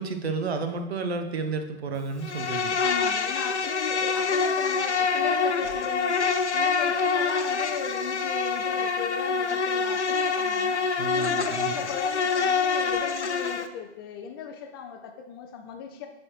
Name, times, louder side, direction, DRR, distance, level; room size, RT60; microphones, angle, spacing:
voice 1, 0.0-2.7 11.0-11.7, right 4 dB, 65° right, 7 dB, 0.8 m, -31 dB
Insect, 2.2-13.7, left 5 dB, 85° left, 0.6 m, -26 dB
voice 2, 2.8-16.1, left 7 dB, 25° left, 4 dB, 0.3 m, -38 dB
9.5 x 4.2 x 3.1 m, 0.98 s
figure-of-eight pair, 100°, 34 cm